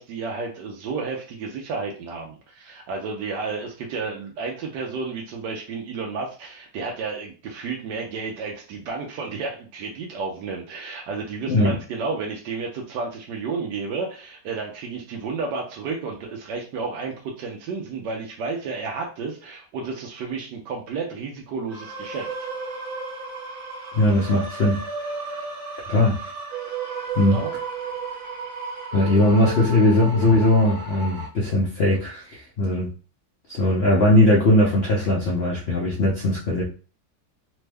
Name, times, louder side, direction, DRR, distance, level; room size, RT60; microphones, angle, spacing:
voice 1, 0.0-22.3 27.3-27.5, right 4 dB, 75° right, 1.2 m, -32 dB
sound 1, 21.7-31.3, right 4 dB, 60° right, 1.4 m, -33 dB
voice 2, 23.9-24.8 25.9-26.2 27.2-27.4 28.9-32.9 33.5-36.6, left 1 dB, 80° left, 0.5 m, -19 dB
3.3 x 2.1 x 3.3 m
omnidirectional pair, 1.9 m